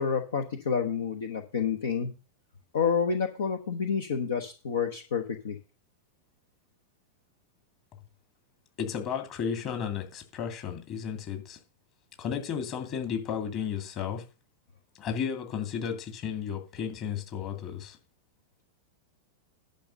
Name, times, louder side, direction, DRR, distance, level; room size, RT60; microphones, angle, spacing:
voice 1, 0.0-2.1 2.7-5.6, left 6 dB, 65° left, 1.0 m, -29 dB
voice 2, 8.8-11.6 12.2-14.2 15.0-18.0, left 7 dB, 40° left, 2.5 m, -33 dB
10.5 x 5.6 x 6.6 m
figure-of-eight pair, 90°, 0 cm